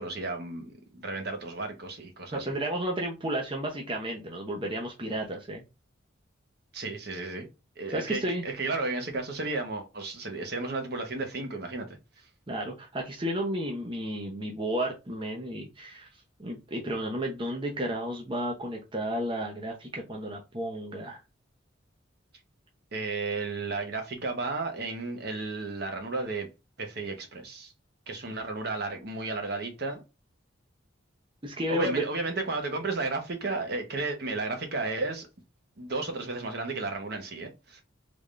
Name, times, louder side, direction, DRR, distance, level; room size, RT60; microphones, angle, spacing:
voice 1, 0.0-2.5 6.7-7.5 7.8-12.0 22.9-26.5 26.8-27.7 28.1-30.0 31.7-35.3 35.8-37.8, right 3 dB, 50° right, 0.9 m, -33 dB
voice 2, 2.3-5.6 7.9-8.4 12.5-16.1 16.4-21.2 31.4-32.1, right 1 dB, 25° right, 0.7 m, -32 dB
3.5 x 3.3 x 2.5 m
head